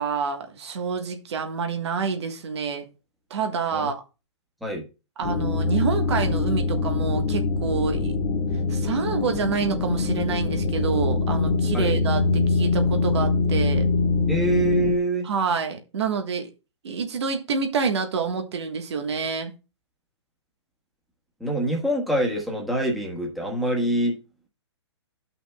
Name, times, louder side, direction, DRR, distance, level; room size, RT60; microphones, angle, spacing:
voice 1, 0.0-2.9 3.3-4.0 5.2-8.1 8.7-13.9 15.2-16.5 16.8-19.5, right 5 dB, 70° right, 1.4 m, -27 dB
sound 1, 5.2-14.9, left 3 dB, 30° left, 1.0 m, -23 dB
voice 2, 14.3-15.3 21.4-24.2, right 1 dB, ahead, 1.5 m, -25 dB
13.5 x 5.8 x 2.2 m
hypercardioid pair, 145°, 15 cm